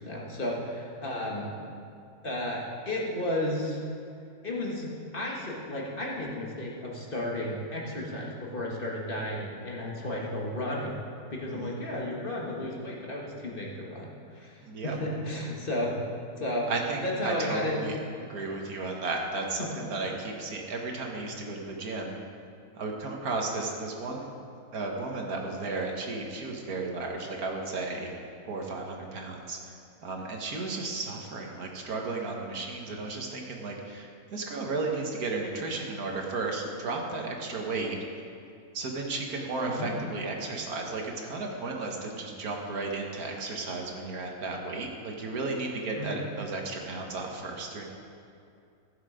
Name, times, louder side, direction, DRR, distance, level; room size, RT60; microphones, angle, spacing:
voice 1, 0.0-1.5 2.2-3.8 4.4-10.9 11.3-14.6 14.8-16.0 16.4-16.7 17.0-17.8 19.6-19.8 39.7-39.9 45.9-46.2, left 1 dB, 40° left, -3 dB, 1.7 m, -33 dB
voice 2, 14.6-15.0 16.7-18.0 18.3-22.2 22.8-24.3 24.7-28.1 28.4-29.7 30.0-38.0 38.7-47.9, right 3 dB, 85° right, 0 dB, 1.9 m, -34 dB
15.5 x 7.4 x 5.0 m, 2.5 s
omnidirectional pair, 1.5 m